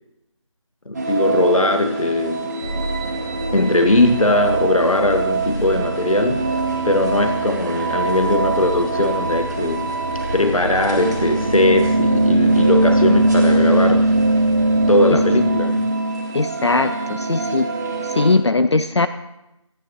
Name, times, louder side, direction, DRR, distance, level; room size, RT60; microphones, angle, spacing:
voice 1, 0.9-2.5 3.5-10.0 10.3-14.1 14.9-15.9, left 1 dB, 90° left, 7 dB, 1.1 m, -19 dB
sound 1, 0.9-18.3, right 2 dB, 30° right, 2.1 m, -21 dB
sound 2, 2.6-15.5, right 1 dB, 80° right, 1.9 m, -30 dB
voice 2, 16.3-17.7 18.0-19.1, left 3 dB, 55° left, 11 dB, 0.5 m, -19 dB
26.5 x 9.9 x 3.0 m, 0.93 s
figure-of-eight pair, 170°, 17 cm